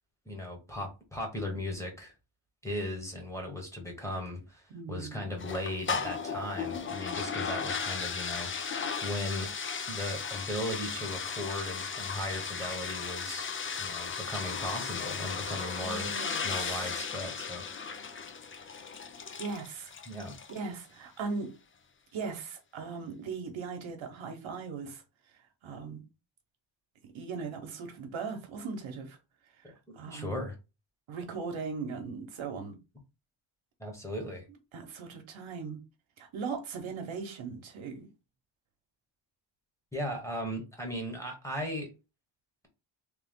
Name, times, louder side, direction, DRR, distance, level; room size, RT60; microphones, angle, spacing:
voice 1, 0.3-2.1 2.6-8.5 9.0-9.5 9.9-13.5 13.8-16.1 16.4-17.7 20.1-20.4 30.1-30.5 33.8-34.4 39.9-41.9, left 1 dB, 5° left, 1.1 m, -37 dB
voice 2, 4.7-5.3 15.4-16.9 19.4-19.9 20.5-21.5 22.1-25.0 25.6-26.0 27.0-29.2 29.9-30.4 31.1-32.8 34.7-35.8 36.2-38.1, right 5 dB, 75° right, 1.0 m, -39 dB
sound 1, 5.4-20.7, left 5 dB, 30° left, 0.3 m, -36 dB
3.3 x 3.1 x 3.6 m
wide cardioid pair, 175°, 47 cm